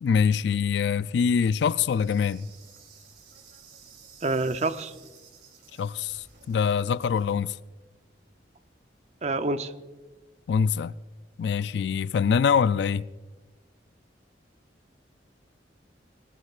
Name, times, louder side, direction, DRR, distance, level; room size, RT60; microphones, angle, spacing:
voice 1, 0.0-2.5 5.8-7.6 10.5-10.9 11.4-13.1, left 6 dB, 70° left, 0.3 m, -24 dB
Insect, 1.8-7.3, right 5 dB, 65° right, 3.1 m, -53 dB
voice 2, 4.2-4.9 9.2-9.7, right 2 dB, 40° right, 0.6 m, -27 dB
19.0 x 19.0 x 2.4 m
head